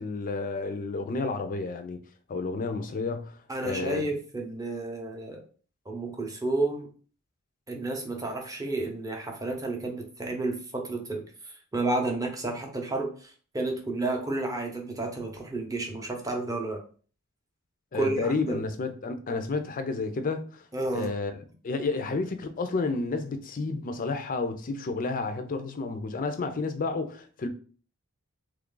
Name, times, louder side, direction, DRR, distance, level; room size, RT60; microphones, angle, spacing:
voice 1, 0.0-2.0 2.3-3.4 3.6-4.0 17.9-20.6 20.9-27.5, left 3 dB, 40° left, 0.4 m, -31 dB
voice 2, 3.5-5.4 5.9-6.9 7.7-16.8 17.9-18.6 20.7-21.1, right 2 dB, 15° right, 0.6 m, -31 dB
3.1 x 2.4 x 3.7 m
head